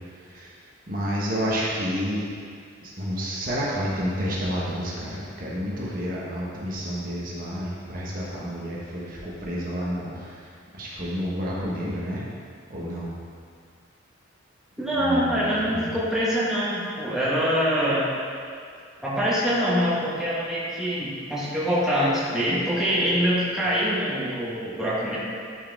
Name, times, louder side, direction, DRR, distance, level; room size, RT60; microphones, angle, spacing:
voice 1, 0.9-2.2 2.8-10.3 10.8-12.2 12.7-13.1 15.0-15.9, equal, 45° right, -6 dB, 1.3 m, -30 dB
voice 2, 14.8-18.1 19.0-25.2, equal, 5° right, -9 dB, 1.4 m, -24 dB
11.0 x 4.8 x 3.5 m, 2.2 s
head